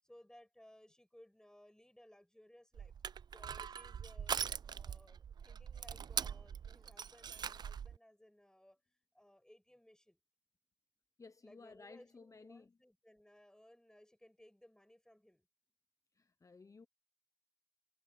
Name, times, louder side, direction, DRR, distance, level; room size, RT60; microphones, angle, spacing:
voice 1, 0.0-2.9 3.3-8.8 9.1-10.2 11.4-15.5, left 1 dB, 10° left, 5.6 m, -62 dB
Crushing, 2.7-8.0, right 7 dB, 85° right, 0.3 m, -42 dB
voice 2, 11.2-12.7 16.1-16.9, left 4 dB, 50° left, 0.8 m, -57 dB
cardioid pair, 50°, 7 cm